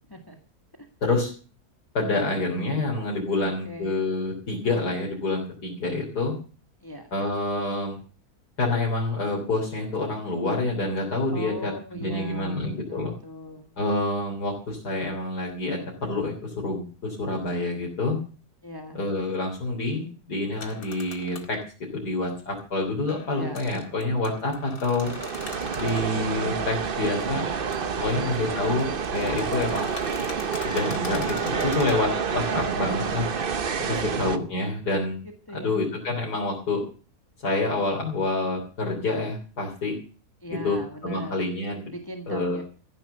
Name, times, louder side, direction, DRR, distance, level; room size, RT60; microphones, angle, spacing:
voice 1, 1.0-1.3 1.9-6.3 7.1-8.0 8.6-13.1 13.8-18.2 18.9-21.6 21.9-25.1 25.8-27.4 28.0-28.8 29.1-29.9 30.6-33.3 33.9-35.2 35.5-36.8 37.4-39.9 40.5-40.8 41.0-41.9 42.3-42.6, left 2 dB, 90° left, -3 dB, 4.1 m, -27 dB
voice 2, 3.4-4.1 6.8-7.1 11.3-13.8 18.6-19.0 23.3-23.6 25.6-26.1 28.1-28.4 28.7-28.9 29.4-29.9 30.3-30.6 34.0-34.2 35.5-35.8 40.4-41.4 41.9-42.6, equal, 15° left, 4 dB, 1.7 m, -39 dB
sound 1, 20.6-21.6 23.1-26.1 27.7-27.8 28.2-32.0, left 4 dB, 65° left, 2.5 m, -42 dB
sound 2, 25.0-34.4, right 6 dB, 40° right, 1.0 m, -28 dB
15.0 x 10.5 x 6.9 m, 0.38 s
omnidirectional pair, 1.7 m